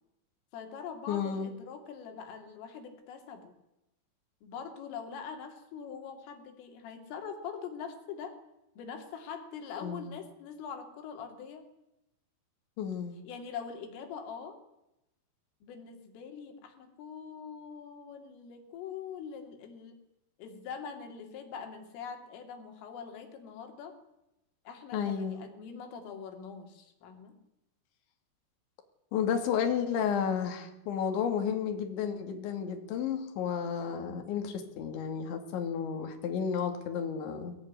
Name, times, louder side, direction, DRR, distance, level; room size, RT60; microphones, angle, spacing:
voice 1, 0.5-3.5 4.4-8.4 8.8-11.7 13.3-14.6 15.6-20.0 20.4-23.9 24.7-27.4, left 6 dB, 90° left, 5 dB, 5.5 m, -43 dB
voice 2, 1.1-1.5 9.8-10.2 12.8-13.2 24.9-25.4 29.1-37.6, left 7 dB, 70° left, 5 dB, 4.8 m, -32 dB
23.5 x 17.5 x 9.8 m, 0.90 s
omnidirectional pair, 5.6 m